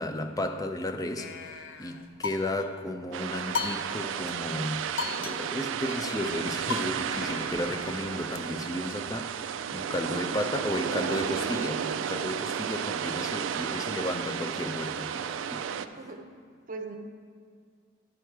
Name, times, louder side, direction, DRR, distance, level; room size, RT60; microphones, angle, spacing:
voice 1, 0.0-1.5 1.8-15.7, left 1 dB, 20° left, 7 dB, 0.4 m, -34 dB
sound 1, 1.2-2.8 3.5-4.3 4.6-4.7 5.0-8.4, left 5 dB, 75° left, 0.5 m, -38 dB
sound 2, 3.1-15.9, right 8 dB, 80° right, 0.3 m, -33 dB
voice 2, 15.7-16.3 16.7-17.0, right 3 dB, 40° right, 4 dB, 0.7 m, -40 dB
12.0 x 4.9 x 4.6 m, 2.1 s
head